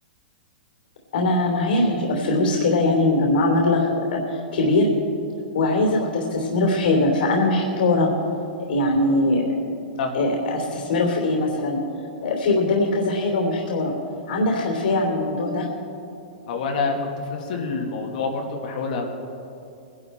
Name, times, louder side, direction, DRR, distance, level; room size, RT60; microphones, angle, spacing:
voice 1, 1.1-4.9 5.5-8.1 8.7-9.6 10.1-11.8 12.2-13.9 14.3-15.7, left 2 dB, 70° left, 0 dB, 3.2 m, -21 dB
voice 2, 16.5-17.0 17.3-19.1, left 4 dB, 55° left, 1 dB, 2.0 m, -27 dB
21.0 x 11.5 x 4.4 m, 2.6 s
hypercardioid pair, 155°, 5 cm